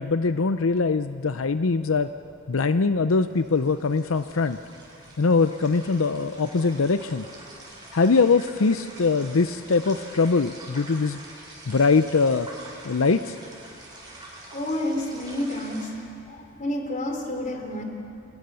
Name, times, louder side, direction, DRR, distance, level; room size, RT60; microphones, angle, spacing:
voice 1, 0.0-2.1 2.5-4.6 5.2-7.2 7.9-11.2 11.7-12.5 12.8-13.4, left 4 dB, 85° left, 10 dB, 0.6 m, -22 dB
sound 1, 3.2-15.9, right 2 dB, 20° right, 6.4 m, -45 dB
voice 2, 14.5-15.9 16.3-17.8, left 1 dB, 40° left, 3 dB, 3.8 m, -29 dB
30.0 x 24.5 x 7.0 m, 2.5 s
head